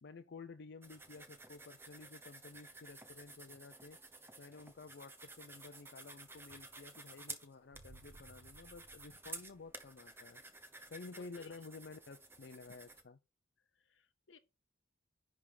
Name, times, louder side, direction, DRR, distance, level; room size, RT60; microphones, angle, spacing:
voice 1, 0.0-4.0 4.4-10.4 10.9-13.2, left 4 dB, 65° left, 0.5 m, -52 dB
sound 1, 0.8-13.0, right 3 dB, 15° right, 0.9 m, -53 dB
sound 2, 7.7-10.4 10.7-10.8, right 2 dB, 65° right, 0.7 m, -61 dB
voice 2, 11.1-11.5 13.8-14.4, left 5 dB, 85° left, 0.9 m, -62 dB
10.5 x 3.6 x 4.8 m
head